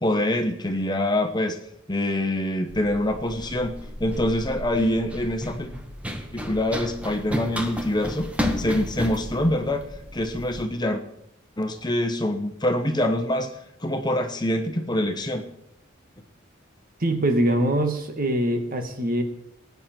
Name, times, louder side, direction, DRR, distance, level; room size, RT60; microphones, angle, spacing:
voice 1, 0.0-1.6 1.9-3.7 4.0-5.7 6.3-8.3 8.6-9.8 10.1-11.0 11.6-13.5 13.8-15.4, left 1 dB, 20° left, 6 dB, 1.2 m, -25 dB
Run, 2.7-10.6, left 1 dB, 5° right, 1.4 m, -33 dB
voice 2, 17.0-19.2, right 1 dB, 45° right, 6 dB, 1.7 m, -23 dB
19.5 x 9.7 x 4.5 m, 0.78 s
head